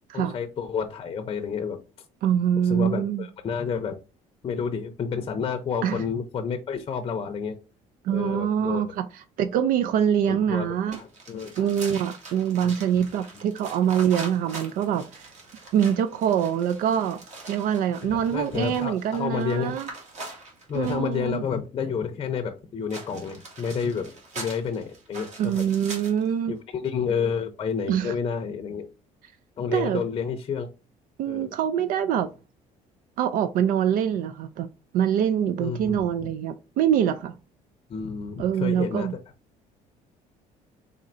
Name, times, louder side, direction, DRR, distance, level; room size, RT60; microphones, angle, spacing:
voice 1, 0.1-1.8 2.6-4.0 4.4-7.6 8.1-8.8 10.3-11.7 18.0-19.8 20.7-25.6 26.5-28.9 29.6-30.7 31.2-31.5 35.6-36.3 37.9-39.1, left 6 dB, 35° left, 0.6 m, -30 dB
voice 2, 2.2-3.3 5.8-6.0 8.0-11.0 11.6-15.3 15.7-17.2 17.5-19.9 20.7-21.4 25.4-26.6 27.9-28.1 29.7-30.0 31.2-32.3 33.2-34.7 34.9-37.3 38.4-39.1, right 9 dB, 70° right, 0.4 m, -24 dB
sound 1, 10.9-21.2 22.9-26.3, right 3 dB, 50° right, 1.8 m, -42 dB
4.2 x 3.8 x 2.5 m
cardioid pair, 130°, 15 cm